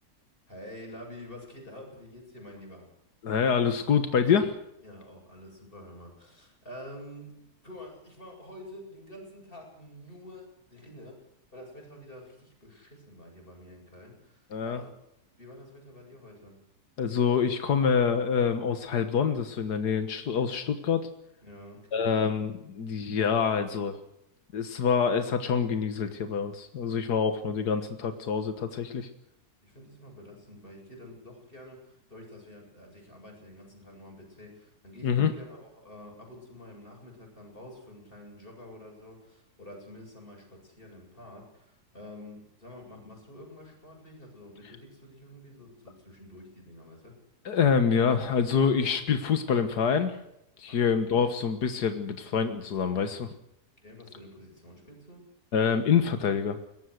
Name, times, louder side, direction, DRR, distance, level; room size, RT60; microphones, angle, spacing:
voice 1, 0.5-2.9 4.8-7.3 7.6-16.6 21.4-22.3 29.6-47.2 50.7-51.0 53.8-55.2, left 1 dB, 35° left, 0 dB, 8.3 m, -48 dB
voice 2, 3.2-4.5 14.5-14.8 17.0-21.1 21.9-24.0 24.5-29.1 35.0-35.3 47.5-50.2 50.6-53.3 55.5-56.6, left 6 dB, 85° left, 8 dB, 1.9 m, -26 dB
22.5 x 19.0 x 6.6 m, 0.80 s
omnidirectional pair, 1.7 m